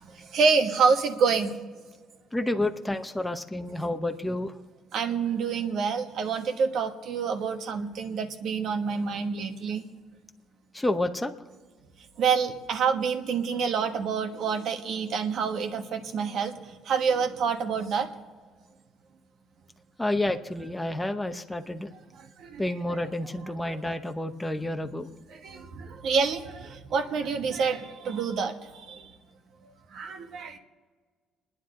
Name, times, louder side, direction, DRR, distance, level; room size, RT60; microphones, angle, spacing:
voice 1, 0.0-1.5 4.9-9.8 12.2-18.1 22.1-22.6 23.6-23.8 25.3-29.1 29.9-30.6, right 5 dB, 60° right, 6 dB, 1.4 m, -27 dB
voice 2, 2.3-4.5 10.7-11.3 20.0-21.9 22.6-25.1, left 1 dB, 10° left, 6 dB, 0.9 m, -29 dB
29.5 x 10.0 x 3.8 m, 1.5 s
cardioid pair, 130°, 0 cm